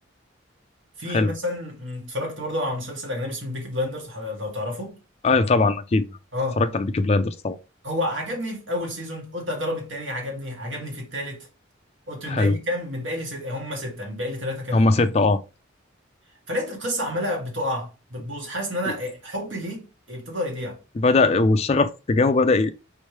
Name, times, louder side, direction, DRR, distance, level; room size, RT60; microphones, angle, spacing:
voice 1, 1.0-5.0 6.3-6.6 7.8-11.5 12.1-14.9 16.5-20.8, left 1 dB, 75° right, 1.7 m, -30 dB
voice 2, 5.2-6.0 6.6-7.6 12.3-12.6 14.7-15.4 18.9-19.0 21.0-22.7, left 3 dB, 30° left, 0.4 m, -20 dB
4.3 x 3.1 x 3.2 m
head